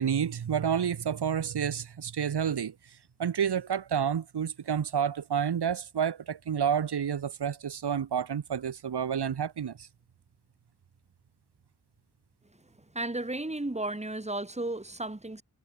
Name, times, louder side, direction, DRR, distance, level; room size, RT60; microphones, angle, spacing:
voice 1, 0.0-2.7 3.2-9.9, right 8 dB, 90° right, 1.1 m, -29 dB
voice 2, 12.8-15.4, right 2 dB, 15° right, 2.2 m, -34 dB
cardioid pair, 45°, 39 cm